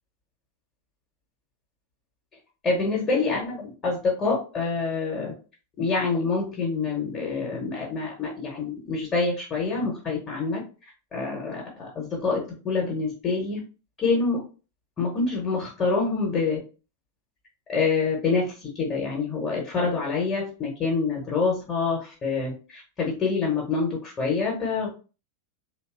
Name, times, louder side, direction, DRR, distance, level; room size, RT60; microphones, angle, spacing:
voice 1, 2.6-5.3 5.8-13.6 14.0-14.4 15.0-16.6 17.7-24.9, left 4 dB, 25° left, -2 dB, 0.8 m, -26 dB
2.7 x 2.3 x 2.3 m, 0.35 s
figure-of-eight pair, 90°, 0 cm